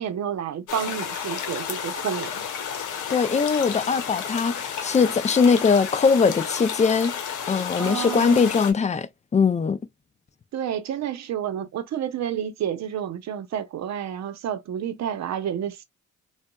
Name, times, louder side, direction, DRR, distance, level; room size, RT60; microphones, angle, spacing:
voice 1, 0.0-2.4 7.7-8.5 10.5-15.8, right 9 dB, 60° right, 0.8 m, -30 dB
sound 1, 0.7-8.7, left 7 dB, 80° left, 0.9 m, -32 dB
voice 2, 3.1-7.2 7.5-9.8, left 5 dB, 25° left, 0.4 m, -21 dB
3.9 x 2.3 x 2.2 m
cardioid pair, 90°, 30 cm